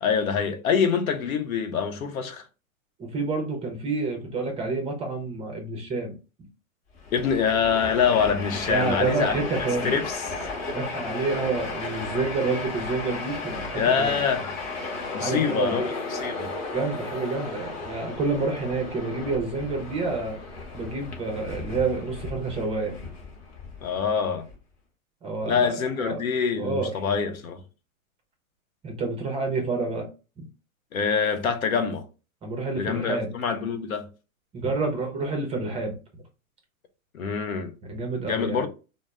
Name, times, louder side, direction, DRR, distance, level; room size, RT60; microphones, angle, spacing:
voice 1, 0.0-2.4 7.1-9.3 9.8-10.3 13.7-14.5 15.1-16.5 23.8-24.4 25.5-27.6 30.9-32.0 32.8-34.1 37.1-37.7 38.2-38.7, left 6 dB, 80° left, 0.7 m, -25 dB
voice 2, 3.0-6.2 8.7-10.0 10.7-14.2 15.1-15.9 16.7-20.4 20.7-22.9 25.2-25.7 26.0-26.2 26.6-26.9 28.8-30.1 30.4-30.5 32.4-33.3 34.5-36.0 37.9-38.7, right 3 dB, 15° right, 0.5 m, -28 dB
Train, 6.9-24.5, left 3 dB, 35° left, 1.0 m, -35 dB
2.0 x 2.0 x 3.4 m
hypercardioid pair, 110°, 42 cm